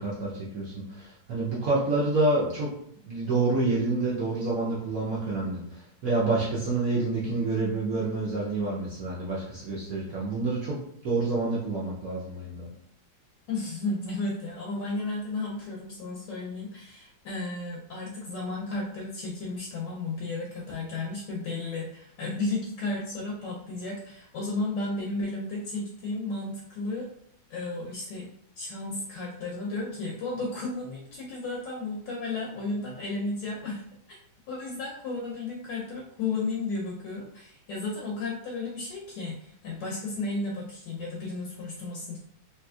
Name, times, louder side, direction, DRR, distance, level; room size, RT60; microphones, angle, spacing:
voice 1, 0.0-2.7 3.0-10.8 11.0-12.7, right 3 dB, 65° right, -7 dB, 0.9 m, -28 dB
voice 2, 13.5-27.1 27.5-28.3 28.6-33.8 34.1-34.2 34.5-42.2, left 3 dB, 70° left, -3 dB, 1.2 m, -33 dB
3.3 x 2.9 x 2.3 m, 0.67 s
omnidirectional pair, 2.2 m